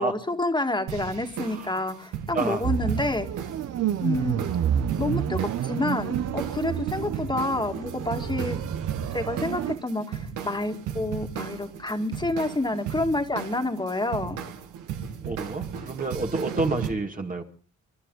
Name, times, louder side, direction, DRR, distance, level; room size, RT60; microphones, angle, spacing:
voice 1, 0.0-3.3 4.0-4.4 5.0-8.6 9.1-14.4, left 2 dB, 15° left, 4 dB, 2.2 m, -28 dB
sound 1, 0.9-16.9, right 8 dB, 90° right, 1.8 m, -36 dB
voice 2, 2.3-2.7 15.2-17.4, right 3 dB, 25° right, 3 dB, 2.0 m, -29 dB
sound 2, 2.6-9.8, right 9 dB, 60° right, 0.9 m, -29 dB
29.0 x 12.0 x 4.0 m, 0.40 s
cardioid pair, 90°, 30 cm